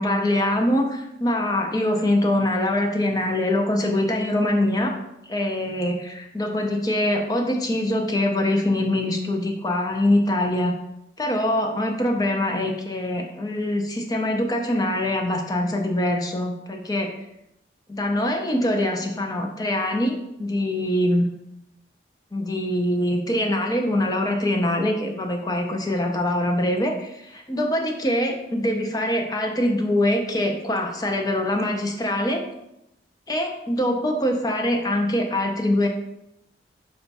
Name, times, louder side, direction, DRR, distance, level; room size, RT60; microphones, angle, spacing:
voice 1, 0.0-5.0 5.3-10.7 11.2-17.1 17.9-21.3 22.3-32.5 33.3-35.9, left 1 dB, 20° left, 3 dB, 0.5 m, -23 dB
4.9 x 2.3 x 4.0 m, 0.84 s
head